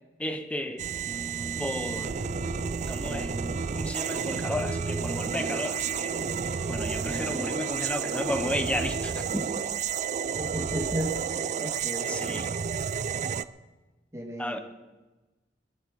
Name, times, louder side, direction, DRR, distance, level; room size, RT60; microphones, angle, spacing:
voice 1, 0.2-0.9 1.6-2.2 2.9-3.3 3.7-6.2 6.4-9.5 12.1-12.5 14.4-14.6, left 1 dB, 5° left, 8 dB, 1.0 m, -33 dB
sound 1, 0.8-13.4, right 6 dB, 40° right, 0.4 m, -31 dB
sound 2, 1.1-8.7, left 1 dB, 40° left, 2.8 m, -41 dB
Laughter / Crowd, 6.1-9.6, left 1 dB, 85° left, 4.6 m, -53 dB
voice 2, 10.4-11.2 11.6-12.1 14.1-14.6, right 1 dB, 15° right, 0 dB, 1.9 m, -33 dB
21.0 x 10.5 x 4.8 m, 1.2 s
head